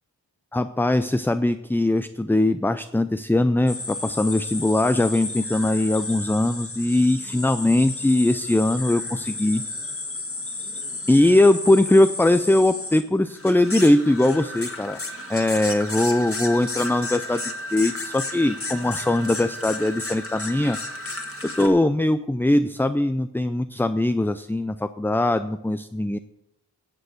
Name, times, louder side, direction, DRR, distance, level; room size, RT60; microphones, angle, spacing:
voice 1, 0.5-9.6 11.1-15.0 15.3-17.4 17.7-20.8 21.4-26.2, left 1 dB, 5° left, 11 dB, 0.3 m, -21 dB
sound 1, 3.7-21.7, left 2 dB, 30° left, 1.7 m, -33 dB
11.0 x 6.9 x 8.0 m, 0.89 s
wide cardioid pair, 70°, 42 cm